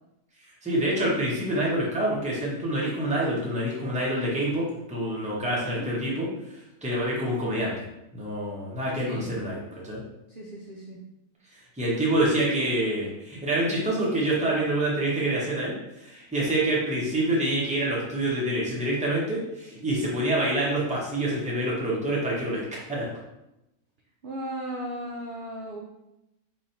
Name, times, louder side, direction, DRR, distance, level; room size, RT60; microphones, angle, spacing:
voice 1, 0.6-7.7 8.1-9.6 9.8-10.0 11.5-23.1, right 1 dB, 5° right, -5 dB, 0.7 m, -27 dB
voice 2, 5.5-5.9 9.0-9.4 10.3-11.0 24.2-25.8, right 1 dB, 60° right, -3 dB, 0.5 m, -36 dB
3.2 x 2.7 x 4.1 m, 0.91 s
omnidirectional pair, 1.5 m